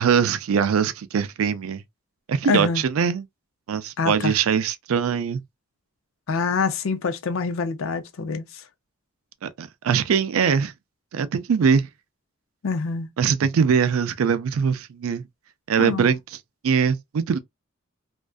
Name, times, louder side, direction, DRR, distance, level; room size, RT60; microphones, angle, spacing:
voice 1, 0.0-1.8 2.3-3.2 3.7-5.4 9.4-10.7 11.1-11.9 13.2-15.2 15.7-16.2 16.6-17.4, right 6 dB, 90° right, 0.4 m, -22 dB
voice 2, 2.5-2.8 4.0-4.3 6.3-8.6 12.6-13.1 15.8-16.1, left 4 dB, 80° left, 0.5 m, -25 dB
2.5 x 2.2 x 2.3 m
head